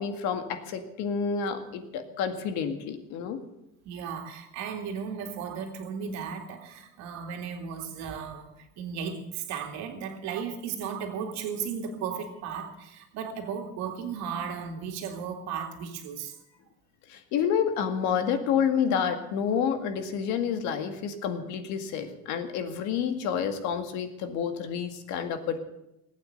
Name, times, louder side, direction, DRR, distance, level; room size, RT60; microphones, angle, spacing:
voice 1, 0.0-3.4 17.1-25.6, left 7 dB, 75° left, 7 dB, 2.0 m, -29 dB
voice 2, 3.8-16.4, right 6 dB, 70° right, 5 dB, 2.5 m, -35 dB
20.0 x 8.9 x 7.9 m, 0.88 s
cardioid pair, 175°, 29 cm